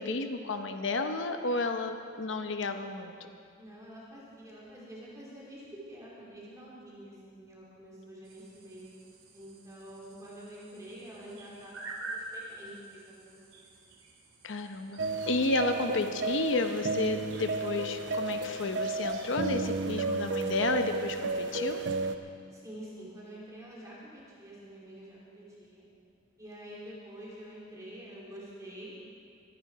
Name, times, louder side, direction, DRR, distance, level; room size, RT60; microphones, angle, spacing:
voice 1, 0.0-3.1 14.4-21.8, left 2 dB, 65° left, 7 dB, 0.8 m, -32 dB
voice 2, 3.6-8.9 9.3-13.7 22.5-25.8 26.4-28.9, right 1 dB, 15° right, -6 dB, 2.9 m, -47 dB
sound 1, 8.2-20.5, right 2 dB, 90° right, 2.4 m, -48 dB
sound 2, 15.0-22.2, right 3 dB, 60° right, 0.7 m, -33 dB
23.0 x 10.5 x 4.7 m, 2.4 s
head